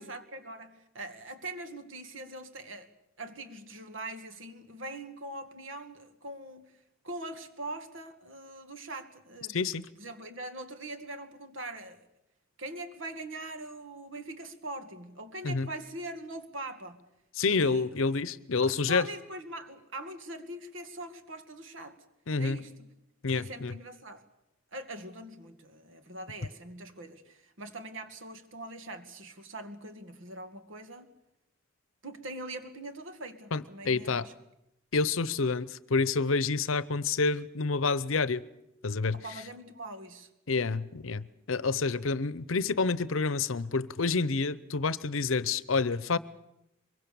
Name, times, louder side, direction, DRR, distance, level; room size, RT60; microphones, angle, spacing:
voice 1, 0.0-2.9 3.2-6.7 7.0-9.6 10.0-12.0 12.6-17.0 17.4-17.9 18.6-22.0 22.4-22.9 23.3-24.2 24.7-31.1 32.0-34.3 39.1-40.3, right 2 dB, 65° right, 2.1 m, -42 dB
voice 2, 9.5-9.8 15.4-15.7 17.4-19.1 22.3-22.6 23.2-23.7 33.5-34.3 34.9-38.4 38.8-39.2 40.5-46.2, left 4 dB, 75° left, 0.8 m, -28 dB
23.5 x 22.5 x 7.0 m
head